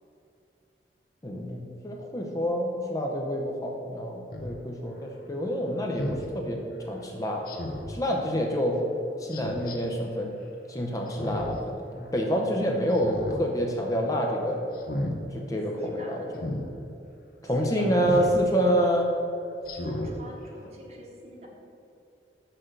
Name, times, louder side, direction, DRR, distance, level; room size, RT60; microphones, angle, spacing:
voice 1, 1.2-7.4 7.9-8.8 9.2-10.3 10.7-14.6 15.3-16.3 17.4-19.1, equal, 20° left, 0 dB, 0.7 m, -27 dB
Speech synthesizer, 4.3-4.5 6.0-6.2 7.5-7.9 9.3-9.8 11.1-11.6 12.0-12.1 12.9-13.4 13.8-14.1 14.7-15.1 16.4-16.6 18.0-18.3 18.8-18.9 19.6-20.1 20.6-20.7, left 1 dB, 55° left, 0.9 m, -33 dB
voice 2, 15.7-16.4 17.4-19.1 19.8-21.5, equal, 35° right, -1 dB, 1.3 m, -44 dB
6.2 x 5.9 x 6.6 m, 2.8 s
head